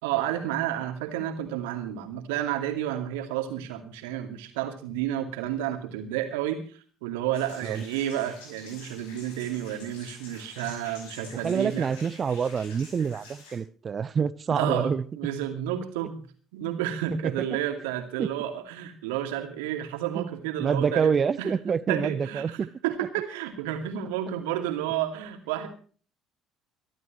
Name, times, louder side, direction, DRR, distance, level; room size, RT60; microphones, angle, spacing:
voice 1, 0.0-11.9 14.5-16.2 16.5-21.5 21.9-22.6 22.8-25.7, right 11 dB, 70° right, 2.4 m, -31 dB
sound 1, 7.3-13.6, left 3 dB, 70° left, 5.7 m, -48 dB
voice 2, 11.3-15.0 17.2-17.5 18.2-18.3 20.1-20.3 20.6-22.7, right 6 dB, 35° right, 0.8 m, -27 dB
24.0 x 12.0 x 3.1 m
figure-of-eight pair, 55°, 0 cm